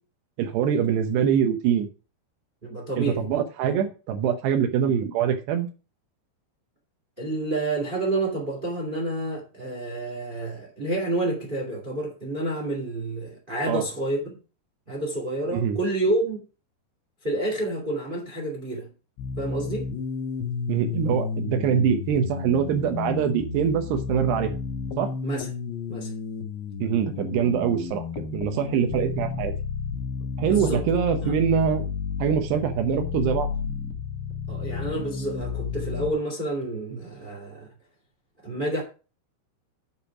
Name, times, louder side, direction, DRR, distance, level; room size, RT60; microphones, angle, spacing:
voice 1, 0.4-1.9 3.0-5.7 13.7-13.8 15.5-15.8 20.7-24.6 25.0-25.1 26.8-28.0 28.3-29.5 30.4-31.8 32.2-33.5, right 8 dB, 75° right, 3.0 m, -24 dB
voice 2, 2.6-3.2 7.2-14.4 14.9-16.4 17.2-18.9 19.4-19.9 25.2-25.5 25.9-26.1 30.4-30.8 31.2-31.3 34.5-37.7 38.4-38.8, right 2 dB, 15° right, 1.6 m, -29 dB
sound 1, 19.2-36.1, left 6 dB, 75° left, 3.6 m, -32 dB
9.6 x 5.1 x 6.0 m
omnidirectional pair, 5.1 m